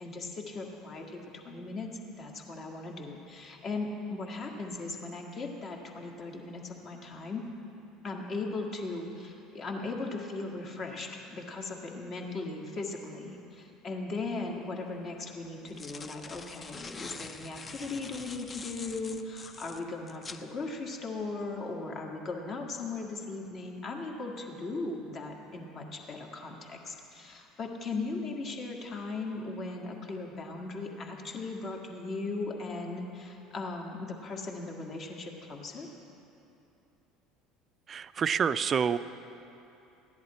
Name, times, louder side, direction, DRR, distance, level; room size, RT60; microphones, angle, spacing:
voice 1, 0.0-1.9 2.2-7.4 8.0-35.9, left 3 dB, 45° left, 1 dB, 1.7 m, -38 dB
sound 1, 14.4-14.5 15.5-20.4, left 4 dB, 30° left, 0.6 m, -45 dB
voice 2, 37.9-39.0, right 7 dB, 40° right, 14 dB, 0.4 m, -27 dB
14.5 x 11.0 x 4.3 m, 2.9 s
hypercardioid pair, 70°, 0 cm